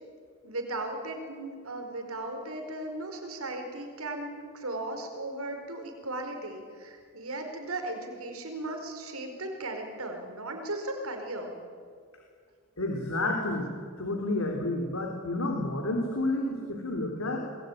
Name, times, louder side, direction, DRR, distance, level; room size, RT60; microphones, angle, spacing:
voice 1, 0.4-11.5, right 2 dB, 85° right, 4 dB, 4.8 m, -36 dB
voice 2, 12.8-13.7 14.0-17.4, left 2 dB, 70° left, 2 dB, 3.5 m, -30 dB
29.0 x 22.0 x 9.3 m, 2.1 s
head